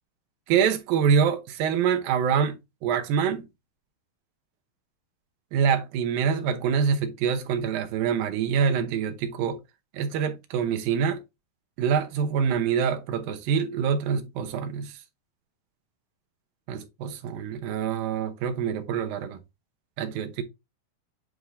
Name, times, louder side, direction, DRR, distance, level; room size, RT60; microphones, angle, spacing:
voice 1, 0.5-2.6 2.8-3.5 5.5-9.6 9.9-11.2 11.8-14.9 16.7-19.4 20.0-20.4, right 7 dB, 75° right, 2.6 m, -25 dB
9.3 x 4.7 x 2.6 m
omnidirectional pair, 4.3 m